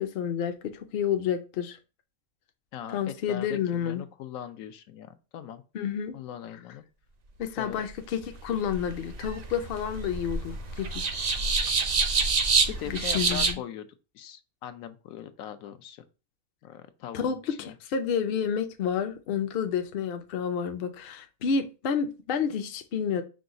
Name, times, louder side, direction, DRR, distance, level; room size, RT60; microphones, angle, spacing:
voice 1, 0.0-1.8 2.9-4.0 5.7-6.2 7.4-11.3 12.8-13.6 17.1-23.2, left 7 dB, 55° left, 7 dB, 0.6 m, -30 dB
voice 2, 2.7-5.6 6.1-6.8 7.6-7.9 12.7-13.9 14.1-16.0 16.6-17.7, left 10 dB, 80° left, 10 dB, 1.0 m, -40 dB
sound 1, 8.2-13.5, right 4 dB, 75° right, 0.3 m, -27 dB
5.0 x 2.3 x 3.7 m, 0.31 s
omnidirectional pair, 1.4 m